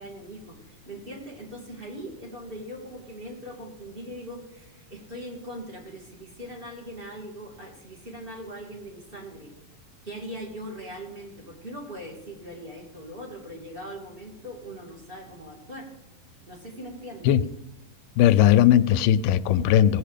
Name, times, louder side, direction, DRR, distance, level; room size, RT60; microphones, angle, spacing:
voice 1, 0.0-9.5 10.0-15.9 16.5-17.3, equal, 20° right, -1 dB, 2.4 m, -40 dB
voice 2, 18.2-20.0, left 11 dB, 85° left, 14 dB, 2.1 m, -18 dB
17.5 x 8.5 x 5.0 m, 0.89 s
omnidirectional pair, 3.7 m